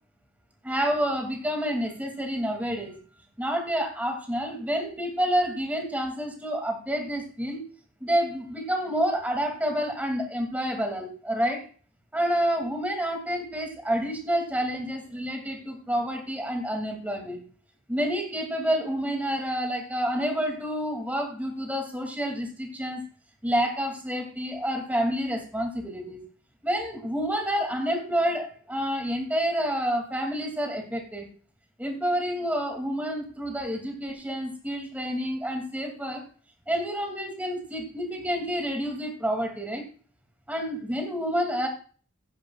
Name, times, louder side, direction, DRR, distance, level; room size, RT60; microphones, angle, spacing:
voice 1, 0.6-2.9 3.4-7.6 8.0-11.7 12.1-17.4 17.9-23.0 23.4-26.2 26.6-31.3 31.8-36.3 36.7-39.8 40.5-41.7, equal, 5° right, 2 dB, 2.6 m, -28 dB
15.5 x 10.5 x 2.4 m, 0.41 s
head